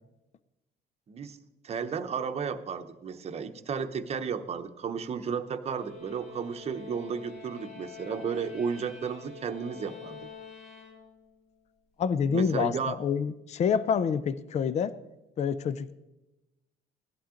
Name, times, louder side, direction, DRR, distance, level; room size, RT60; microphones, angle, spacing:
voice 1, 1.1-1.4 1.6-10.2 12.3-13.0, right 6 dB, 40° right, 8 dB, 0.9 m, -33 dB
sound 1, 5.7-11.4, left 5 dB, 70° left, 3.8 m, -47 dB
voice 2, 12.0-14.9 15.4-15.9, left 7 dB, 40° left, 16 dB, 0.5 m, -27 dB
16.5 x 11.5 x 3.8 m, 0.97 s
cardioid pair, 110°, 17 cm